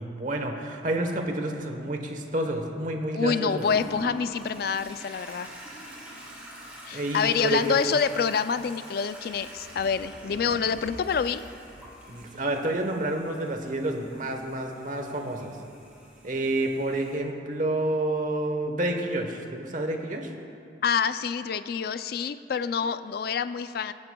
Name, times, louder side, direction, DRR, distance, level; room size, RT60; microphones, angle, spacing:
voice 1, 0.0-3.7 6.9-8.0 12.1-15.6 16.2-20.3, right 1 dB, 45° right, 4 dB, 1.0 m, -29 dB
voice 2, 3.1-5.5 6.9-11.4 20.8-23.9, left 6 dB, 55° left, 13 dB, 0.3 m, -27 dB
Toilet flush, 3.6-17.2, right 1 dB, 10° right, 2.3 m, -45 dB
19.5 x 11.0 x 2.3 m, 2.5 s
head